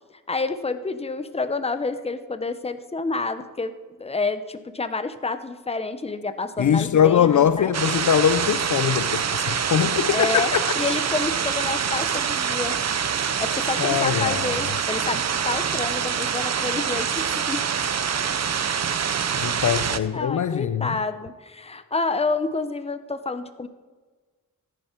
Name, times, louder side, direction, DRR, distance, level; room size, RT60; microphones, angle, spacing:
voice 1, 0.3-7.7 10.1-10.5 10.8-12.8 13.4-17.7 19.6-19.9 20.1-23.7, left 3 dB, 20° left, 0.7 m, -29 dB
voice 2, 6.6-10.7 13.8-14.6 19.4-20.9, left 9 dB, 60° left, 0.5 m, -22 dB
sound 1, 7.7-20.0, right 7 dB, 50° right, 0.6 m, -25 dB
14.0 x 10.0 x 4.5 m
wide cardioid pair, 100°, 34 cm